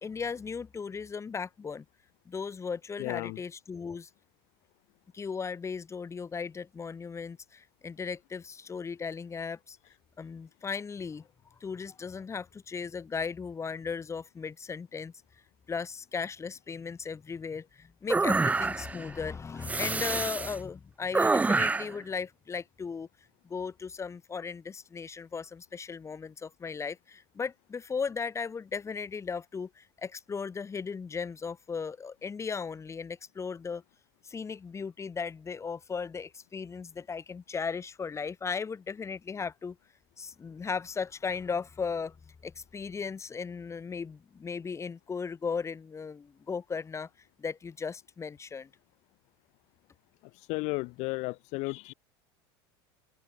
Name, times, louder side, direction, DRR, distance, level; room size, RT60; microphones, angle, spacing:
voice 1, 0.0-1.8 2.2-4.1 5.1-9.8 10.2-11.2 11.6-15.1 15.7-23.1 23.4-33.8 34.2-39.8 40.2-42.2 42.4-47.1 47.4-48.7, left 5 dB, 20° left, 1.5 m, -36 dB
voice 2, 3.0-3.4 50.5-51.9, left 25 dB, 60° left, 0.6 m, -33 dB
sound 1, 18.1-19.0 19.6-20.6 21.1-22.0, right 3 dB, 10° right, 0.5 m, -27 dB
open air
hypercardioid pair, 95°, 13 cm